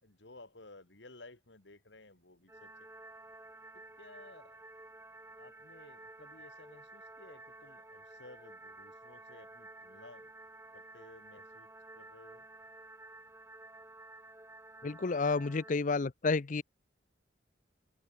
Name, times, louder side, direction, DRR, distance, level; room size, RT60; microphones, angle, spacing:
voice 1, 0.0-2.7 3.7-4.7 5.4-10.3 10.7-12.5, left 2 dB, 80° left, 3.7 m, -56 dB
sound 1, 2.5-15.8, right 2 dB, 15° right, 5.2 m, -52 dB
voice 2, 14.8-16.6, left 4 dB, 45° left, 0.6 m, -30 dB
open air
head